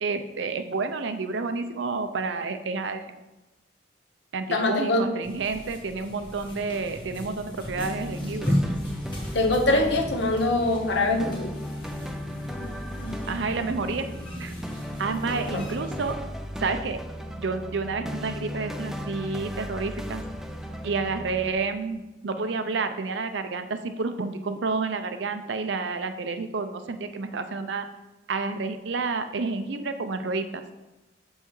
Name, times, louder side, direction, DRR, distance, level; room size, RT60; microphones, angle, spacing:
voice 1, 0.0-3.1 4.3-8.6 13.3-14.1 14.4-14.5 15.0-16.2 16.6-17.0 17.4-20.2 20.8-27.9 28.3-30.6, right 4 dB, 70° right, 9 dB, 0.5 m, -30 dB
voice 2, 4.5-5.0 9.3-11.5 15.5-15.6, left 2 dB, 65° left, 3 dB, 0.8 m, -23 dB
sound 1, 5.2-16.1, equal, 25° left, 1.6 m, -35 dB
sound 2, 7.8-21.5, equal, ahead, 0.3 m, -36 dB
6.9 x 5.6 x 3.1 m, 1.0 s
head